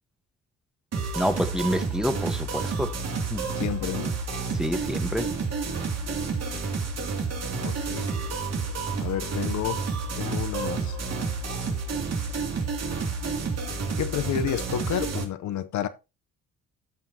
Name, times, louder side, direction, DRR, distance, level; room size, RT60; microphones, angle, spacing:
sound 1, 0.9-15.2, right 4 dB, 60° right, 2.5 m, -30 dB
voice 1, 1.1-2.9 3.3-3.5 4.5-5.3, equal, ahead, 1.3 m, -28 dB
voice 2, 3.6-4.1 7.6-8.1 9.0-9.8 10.2-11.0 14.0-15.9, left 10 dB, 70° left, 0.8 m, -30 dB
15.0 x 5.7 x 2.8 m
cardioid pair, 90°, 30 cm